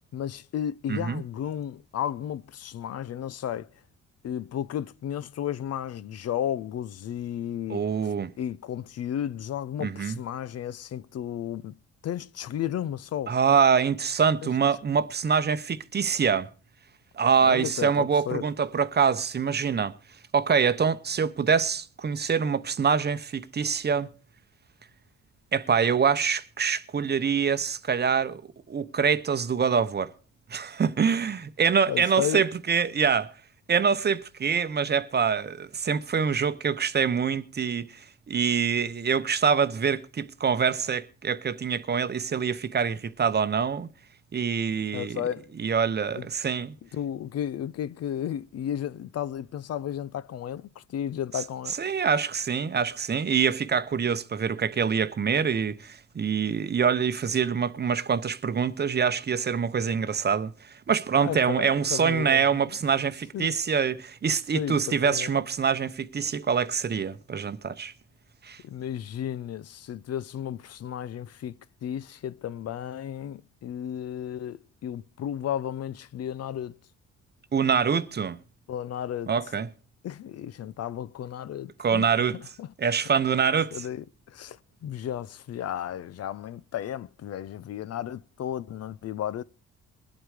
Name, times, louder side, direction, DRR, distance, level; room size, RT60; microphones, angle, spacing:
voice 1, 0.1-3.7 4.2-11.7 12.0-13.4 14.4-14.5 17.4-18.4 31.9-32.5 44.9-45.5 46.2-46.3 46.9-51.8 61.2-62.7 63.3-63.5 64.5-65.3 68.6-71.5 71.8-76.8 78.7-79.3 80.0-82.7 83.7-89.4, left 10 dB, 55° left, 0.6 m, -33 dB
voice 2, 0.9-1.2 7.7-8.3 9.8-10.1 13.3-16.5 17.2-19.9 20.3-24.1 25.5-28.4 28.7-30.1 30.5-33.3 33.7-43.9 44.3-45.2 45.6-46.7 51.8-67.9 68.4-68.6 77.5-78.4 79.3-79.7 81.8-82.4 82.8-83.9, right 6 dB, 35° right, 0.8 m, -25 dB
21.5 x 7.9 x 4.9 m
cardioid pair, 90°, 30 cm